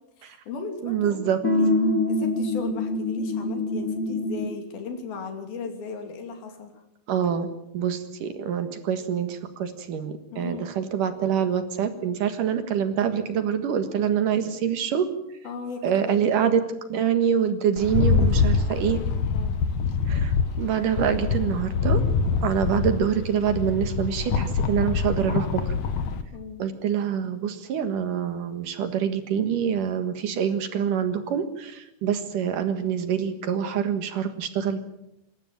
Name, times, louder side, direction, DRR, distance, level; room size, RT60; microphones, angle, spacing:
voice 1, 0.2-1.7 2.1-6.8 10.3-10.7 15.4-16.2 18.0-18.7 19.3-19.6 26.3-26.6, left 4 dB, 75° left, 5 dB, 4.7 m, -37 dB
voice 2, 0.8-1.4 7.1-15.1 15.8-16.6 16.9-19.0 20.1-22.0 22.4-25.7 26.6-34.8, right 8 dB, 65° right, 9 dB, 3.0 m, -25 dB
sound 1, 1.4-4.6, left 2 dB, 25° left, 2.8 m, -25 dB
Rattle, 17.8-26.2, left 5 dB, 60° left, 2.4 m, -25 dB
26.0 x 13.5 x 9.0 m, 0.83 s
omnidirectional pair, 4.3 m